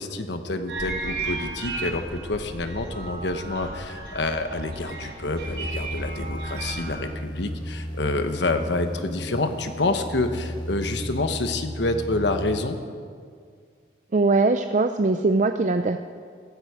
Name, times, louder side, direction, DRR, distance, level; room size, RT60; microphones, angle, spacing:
voice 1, 0.0-12.8, left 2 dB, 75° left, 7 dB, 1.1 m, -28 dB
sound 1, 0.7-7.0, right 3 dB, 80° right, 3.7 m, -34 dB
sound 2, 5.2-12.6, equal, 25° left, 1.1 m, -35 dB
voice 2, 14.1-16.0, right 3 dB, 40° right, 8 dB, 0.4 m, -21 dB
15.5 x 14.0 x 5.0 m, 2.1 s
head